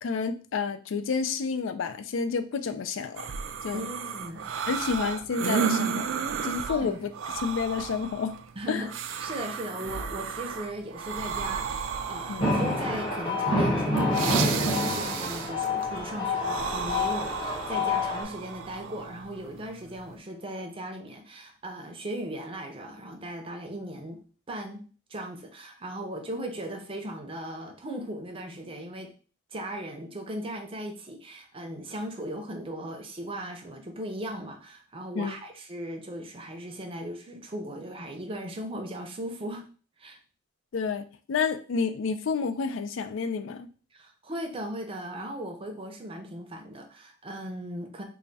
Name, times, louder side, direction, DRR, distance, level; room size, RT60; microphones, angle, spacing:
voice 1, 0.0-3.3 3.6-3.9 4.7-6.1 6.4-7.1 7.4-8.4 8.7-8.8 12.3-12.5 35.1-35.4 40.7-43.7, left 5 dB, 75° left, 10 dB, 0.4 m, -30 dB
sound 1, 3.2-20.2, right 6 dB, 75° right, 0.4 m, -34 dB
voice 2, 3.7-4.4 6.7-7.0 8.6-8.9 9.2-24.2 24.5-24.8 25.1-29.1 29.5-39.6 40.0-40.2 43.9-48.0, right 1 dB, 30° right, 4 dB, 0.6 m, -37 dB
sound 2, 12.4-18.2, left 2 dB, 25° left, 1.0 m, -27 dB
3.3 x 2.3 x 4.0 m, 0.39 s
head